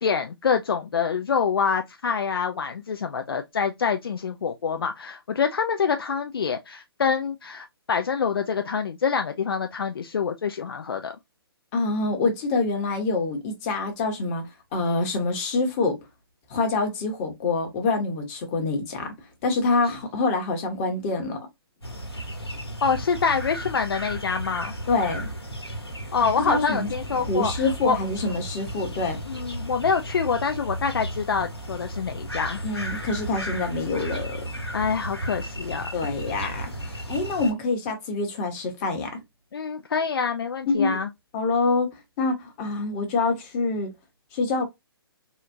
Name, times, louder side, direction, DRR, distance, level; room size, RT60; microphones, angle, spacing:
voice 1, 0.0-11.1 22.8-24.7 26.1-28.0 29.3-32.6 34.7-35.9 39.5-41.1, left 6 dB, 65° left, 0.5 m, -26 dB
voice 2, 11.7-14.4 14.7-16.0 16.5-19.1 19.4-21.4 24.9-25.3 26.4-26.9 27.2-29.2 32.6-34.4 35.9-39.2 40.7-41.0 41.3-41.9 42.2-43.9 44.3-44.6, left 3 dB, 30° left, 1.3 m, -26 dB
sound 1, 21.8-37.5, right 1 dB, 90° left, 1.5 m, -34 dB
4.2 x 2.5 x 2.6 m
figure-of-eight pair, 130°, 13 cm